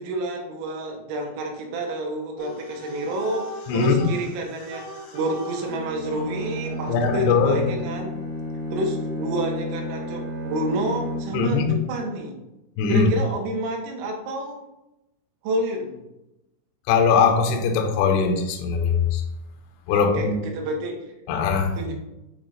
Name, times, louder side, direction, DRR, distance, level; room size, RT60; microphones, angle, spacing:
voice 1, 0.0-8.1 8.7-12.4 12.9-14.6 15.4-16.0 19.9-21.0 21.8-21.9, right 1 dB, 85° right, 3.5 m, -29 dB
sound 1, 2.4-7.1, right 1 dB, 60° left, 3.1 m, -39 dB
Bowed string instrument, 5.6-11.6, equal, 55° right, 3.3 m, -32 dB
voice 2, 6.9-7.6 11.3-11.8 12.8-13.1 16.9-19.2 19.9-20.4 21.3-21.7, left 5 dB, 80° left, 2.5 m, -20 dB
8.7 x 3.2 x 3.9 m
omnidirectional pair, 6.0 m